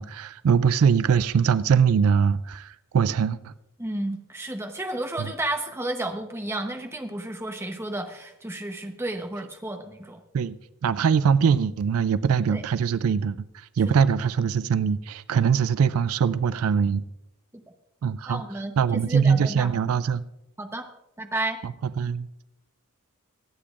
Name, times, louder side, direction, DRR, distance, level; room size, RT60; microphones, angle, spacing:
voice 1, 0.0-3.5 5.2-5.3 10.3-10.5 10.8-17.0 18.0-18.4 18.8-20.2 21.6-22.3, right 6 dB, 75° right, 0.4 m, -22 dB
voice 2, 3.8-10.2 12.5-12.6 13.9-14.1 17.5-17.6 18.3-19.7 20.6-20.8 21.2-21.6, right 1 dB, 10° right, 0.8 m, -32 dB
24.5 x 8.5 x 2.4 m
head